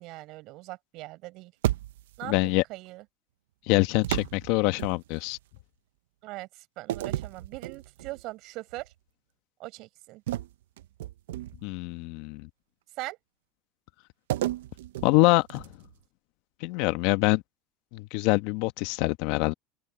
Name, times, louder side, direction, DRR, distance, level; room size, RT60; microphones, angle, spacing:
voice 1, 0.0-1.5 2.2-3.0 6.2-8.9 9.6-10.2 13.0-13.2, right 20 dB, 60° right, 7.0 m, -41 dB
sound 1, 1.6-2.3 4.0-5.4 6.9-8.2 8.7-8.9 10.3-11.8 14.3-15.9, right 14 dB, 85° right, 0.8 m, -33 dB
voice 2, 2.3-2.6 3.7-5.4 11.6-12.5 15.0-15.7 16.6-17.4 17.9-19.5, left 22 dB, 70° left, 1.2 m, -25 dB
open air
supercardioid pair, 95°, 0 cm